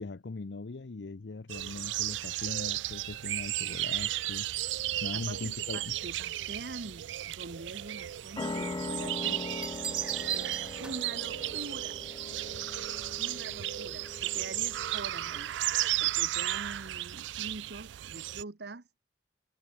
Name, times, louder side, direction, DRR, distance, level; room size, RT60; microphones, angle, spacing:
voice 1, 0.0-6.0, left 3 dB, 75° left, 0.7 m, -40 dB
sound 1, 1.5-18.4, right 15 dB, 85° right, 0.4 m, -34 dB
voice 2, 5.1-9.5 10.3-10.5 10.8-12.0 13.2-15.5 16.0-18.8, right 3 dB, 65° right, 1.0 m, -44 dB
sound 2, 8.4-15.6, left 3 dB, 20° left, 0.4 m, -41 dB
Bell, 9.3-11.2 12.8-13.2, right 1 dB, 5° right, 0.7 m, -43 dB
head